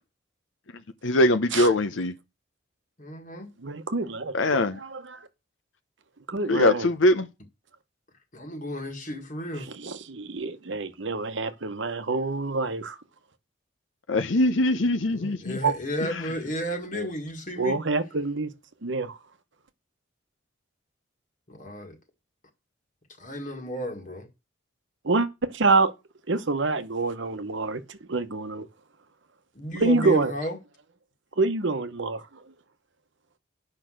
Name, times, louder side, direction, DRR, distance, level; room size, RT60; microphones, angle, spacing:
voice 1, 1.0-2.1 4.3-4.8 6.5-7.3 14.1-15.6 16.0-16.2, left 1 dB, 70° left, 0.7 m, -22 dB
voice 2, 3.0-3.5 8.3-9.7 15.1-17.8 21.5-22.0 23.2-24.3 29.6-30.6, equal, 40° left, 1.7 m, -33 dB
voice 3, 3.6-5.3 6.3-6.9 9.7-13.0 15.6-15.7 16.9-17.1 17.6-18.5 18.8-19.2 25.0-25.9 26.3-28.7 29.8-30.3 31.4-32.3, right 3 dB, 65° right, 1.0 m, -27 dB
8.9 x 5.8 x 6.3 m
head